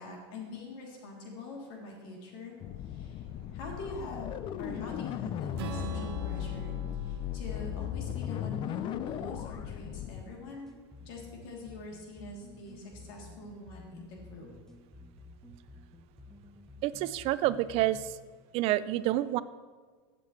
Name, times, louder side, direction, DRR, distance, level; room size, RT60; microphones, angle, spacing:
voice 1, 0.0-2.6 2.8-3.2 3.5-10.7 11.0-14.5, left 3 dB, 70° left, -1 dB, 3.0 m, -44 dB
sound 1, 2.6-10.2, left 10 dB, 40° left, 0.5 m, -36 dB
Strum, 5.6-9.8, right 5 dB, 75° right, 1.3 m, -45 dB
sound 2, 10.2-18.2, left 2 dB, 5° left, 0.9 m, -52 dB
voice 2, 16.8-18.2 18.5-19.4, right 15 dB, 50° right, 15 dB, 0.5 m, -28 dB
15.5 x 7.6 x 3.2 m, 1.5 s
supercardioid pair, 115°, 13 cm